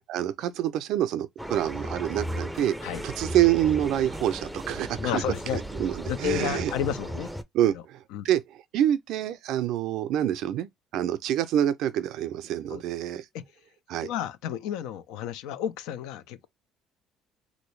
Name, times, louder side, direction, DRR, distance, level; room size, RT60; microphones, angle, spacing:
voice 1, 0.1-2.7 3.0-5.2 5.5-6.7 7.5-8.0 8.2-8.4 8.7-13.2 13.9-14.1, right 11 dB, 75° right, 0.4 m, -26 dB
sound 1, 1.4-7.4, equal, 5° right, 0.4 m, -35 dB
voice 2, 5.0-5.6 6.1-7.3 7.7-7.8 8.1-8.3 12.7-12.8 13.3-13.4 14.0-16.5, left 9 dB, 85° left, 0.4 m, -31 dB
3.0 x 2.6 x 3.1 m
supercardioid pair, 90°, 0 cm